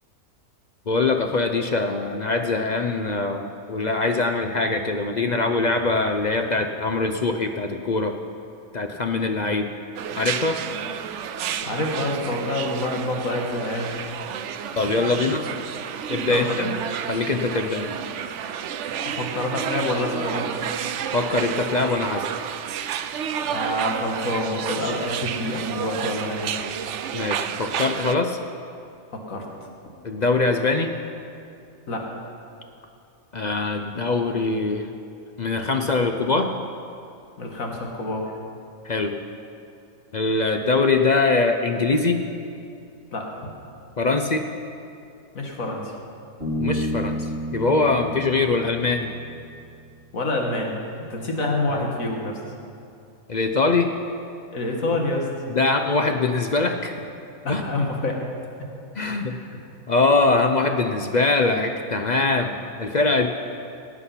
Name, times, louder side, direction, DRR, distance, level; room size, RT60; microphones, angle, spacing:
voice 1, 0.9-8.2 8.7-9.7 10.2-10.6 14.8-15.4 16.1-16.7 17.1-18.0 21.1-22.3 27.1-28.4 30.0-30.9 33.3-34.9 35.4-36.5 38.8-39.2 40.1-42.2 44.0-44.5 46.6-49.1 53.3-53.9 55.5-57.0 57.5-57.9 59.0-59.4 59.9-63.3, left 3 dB, 50° left, 5 dB, 0.5 m, -23 dB
sound 1, 10.0-28.2, right 8 dB, 65° right, 0.8 m, -31 dB
voice 2, 11.6-14.0 15.0-15.4 16.3-16.8 19.0-20.5 23.4-26.6 29.3-29.4 31.9-32.3 37.4-38.3 43.1-43.3 45.4-45.8 50.1-50.7 51.1-52.4 54.5-55.3 57.4-58.2 59.1-59.5, left 1 dB, 70° left, 1 dB, 2.0 m, -27 dB
Bass guitar, 46.4-49.9, equal, 45° right, 2.8 m, -31 dB
18.0 x 8.4 x 5.7 m, 2.5 s
omnidirectional pair, 1.5 m